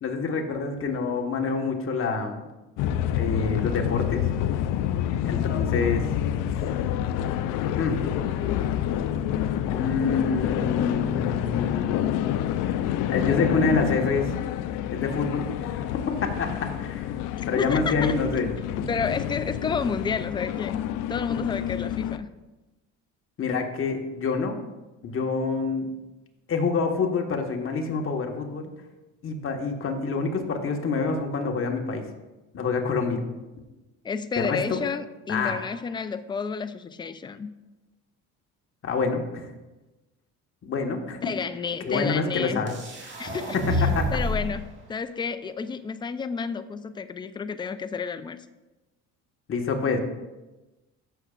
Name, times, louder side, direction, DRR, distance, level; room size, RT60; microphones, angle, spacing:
voice 1, 0.0-2.4 3.1-4.3 5.2-6.1 7.8-8.0 9.7-12.0 13.1-14.3 14.9-15.8 16.2-17.1 17.5-18.5 18.8-18.9 23.4-24.5 25.0-25.9 26.5-28.7 29.2-32.0 32.5-33.2 34.4-34.8 35.3-35.6 38.8-39.5 40.6-41.2 41.8-42.8 43.3-44.1 49.5-50.0, left 4 dB, 45° left, 3 dB, 1.4 m, -27 dB
sound 1, 2.8-22.2, left 11 dB, 85° left, 0.5 m, -28 dB
voice 2, 17.6-18.1 18.9-20.8 21.1-22.3 34.0-37.5 41.2-42.7 43.2-43.6 44.1-44.6 44.9-48.4, left 5 dB, 15° left, 11 dB, 0.4 m, -31 dB
sound 2, 42.7-44.6, left 1 dB, 35° right, 1.9 m, -28 dB
14.0 x 6.7 x 2.4 m, 1.1 s
cardioid pair, 100°, 31 cm